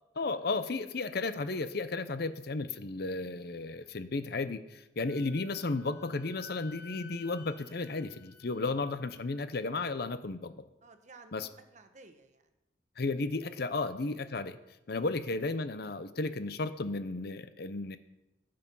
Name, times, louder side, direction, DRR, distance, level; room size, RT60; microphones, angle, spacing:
voice 1, 0.2-10.5 11.3-11.5 13.0-14.6 14.9-18.0, left 3 dB, 60° left, 12 dB, 0.7 m, -34 dB
Wind instrument woodwind instrument, 5.0-9.5, left 4 dB, 85° left, 3.2 m, -53 dB
voice 2, 10.8-12.5 13.6-13.7 14.9-15.0, right 3 dB, 40° right, 8 dB, 1.1 m, -56 dB
15.5 x 7.8 x 5.5 m, 0.94 s
head